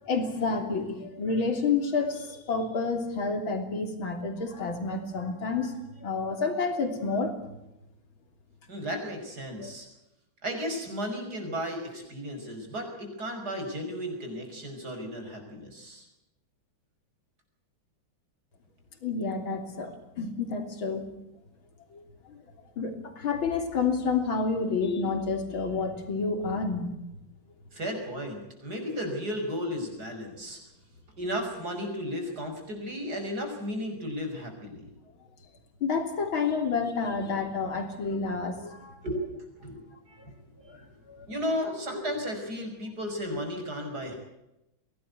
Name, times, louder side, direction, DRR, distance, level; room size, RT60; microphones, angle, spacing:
voice 1, 0.0-7.4 9.6-9.7 19.0-21.1 21.9-22.0 22.3-22.4 22.8-26.9 35.8-39.0 40.6-40.8 41.1-41.3 42.6-42.7, left 4 dB, 90° left, 6 dB, 4.0 m, -29 dB
voice 2, 8.7-9.9 10.4-16.0 27.7-30.6 31.2-34.9 39.0-40.2 40.7-40.8 41.3-44.2, equal, 50° right, 4 dB, 6.3 m, -34 dB
23.0 x 18.0 x 8.4 m, 0.89 s
omnidirectional pair, 2.1 m